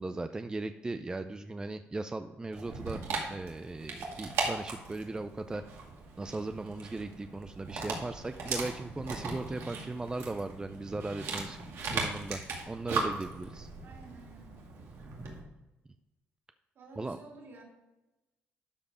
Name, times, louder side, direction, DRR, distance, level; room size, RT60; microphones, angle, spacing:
voice 1, 0.0-3.0 3.3-5.6 6.2-11.6 11.9-13.7 17.0-17.2, right 2 dB, 15° right, 9 dB, 0.4 m, -38 dB
Dog, 2.5-15.4, right 4 dB, 75° right, 2.1 m, -38 dB
voice 2, 9.6-9.9 13.8-14.6 16.8-17.6, right 3 dB, 60° right, -1 dB, 3.5 m, -52 dB
12.0 x 5.1 x 5.0 m, 1.0 s
cardioid pair, 85°, 4 cm